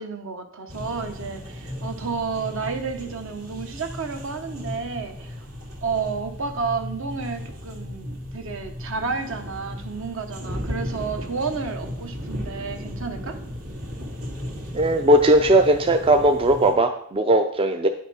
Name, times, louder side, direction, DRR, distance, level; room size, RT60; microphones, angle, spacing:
voice 1, 0.0-5.4 5.8-13.4, right 5 dB, 65° right, 6 dB, 1.0 m, -31 dB
sound 1, 0.7-16.7, equal, 85° right, 2.4 m, -35 dB
voice 2, 14.7-17.9, right 1 dB, 25° right, 6 dB, 0.4 m, -18 dB
10.5 x 5.8 x 4.2 m, 0.68 s
head